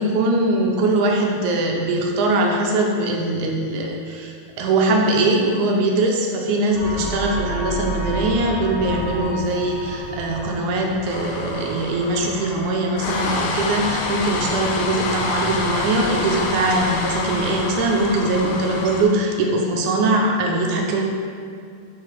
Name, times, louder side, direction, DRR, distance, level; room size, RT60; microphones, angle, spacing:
voice 1, 0.0-21.0, right 2 dB, 80° right, 1 dB, 1.9 m, -21 dB
sound 1, 6.7-14.8, right 1 dB, 60° right, 1.1 m, -32 dB
sound 2, 11.1-19.0, left 3 dB, 80° left, 1.6 m, -27 dB
4.8 x 4.8 x 5.7 m, 2.2 s
omnidirectional pair, 3.8 m